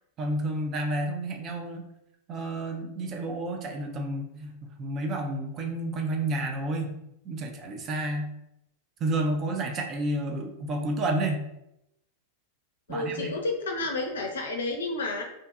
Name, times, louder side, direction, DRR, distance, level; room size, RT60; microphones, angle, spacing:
voice 1, 0.2-1.8 2.3-6.9 7.2-8.3 9.0-11.4 12.9-13.3, right 1 dB, 30° right, 3 dB, 0.4 m, -30 dB
voice 2, 12.9-15.2, left 2 dB, 65° left, 3 dB, 0.5 m, -30 dB
2.6 x 2.6 x 2.4 m, 0.84 s
figure-of-eight pair, 90°, 0 cm